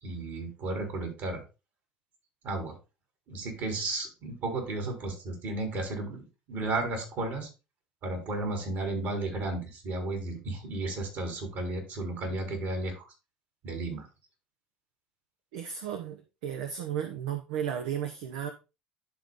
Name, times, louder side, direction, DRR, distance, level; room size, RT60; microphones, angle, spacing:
voice 1, 0.0-1.4 2.4-2.7 3.3-6.2 6.5-7.5 8.0-13.1 13.6-14.1, right 2 dB, 60° right, 3.6 m, -33 dB
voice 2, 15.5-18.5, right 9 dB, 80° right, 0.8 m, -34 dB
11.5 x 3.9 x 3.6 m
hypercardioid pair, 70°, 4 cm